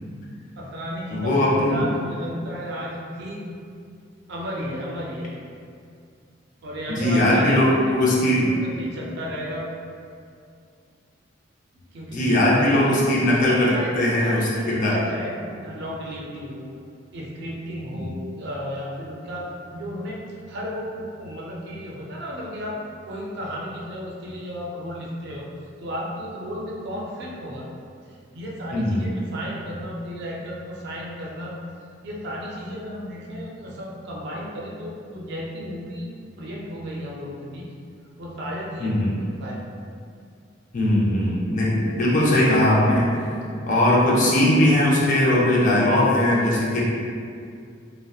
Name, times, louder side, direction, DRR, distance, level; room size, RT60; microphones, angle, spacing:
voice 1, 0.6-3.6 4.3-5.3 6.6-7.5 8.0-9.7 11.9-13.2 13.7-16.7 17.1-20.2 20.5-22.8 23.0-25.5 25.8-27.7 28.1-31.5 32.0-36.1 36.4-37.7 38.2-39.6, equal, 65° right, -4 dB, 0.4 m, -34 dB
voice 2, 1.1-1.8 7.0-8.5 12.1-15.0 17.9-18.1 28.7-29.1 38.8-39.1 40.7-43.2 43.6-46.8, left 1 dB, 45° left, -6 dB, 0.5 m, -19 dB
2.6 x 2.0 x 2.3 m, 2.3 s
head